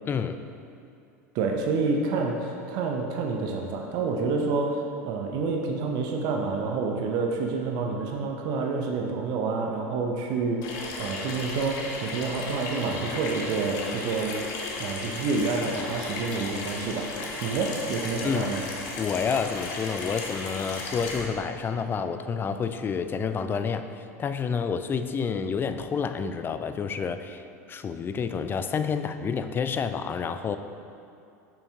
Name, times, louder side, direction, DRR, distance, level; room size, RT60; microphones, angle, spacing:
voice 1, 0.1-0.4 18.2-18.6 19.0-30.6, left 6 dB, 25° left, 9 dB, 0.3 m, -29 dB
voice 2, 1.3-14.4 14.8-17.1 17.4-18.6, right 4 dB, 55° right, 2 dB, 0.6 m, -28 dB
Water tap faucet / Sink (filling or washing), 10.6-21.3, left 3 dB, 55° left, 1.0 m, -35 dB
6.9 x 5.7 x 2.8 m, 2.6 s
hypercardioid pair, 80°, 9 cm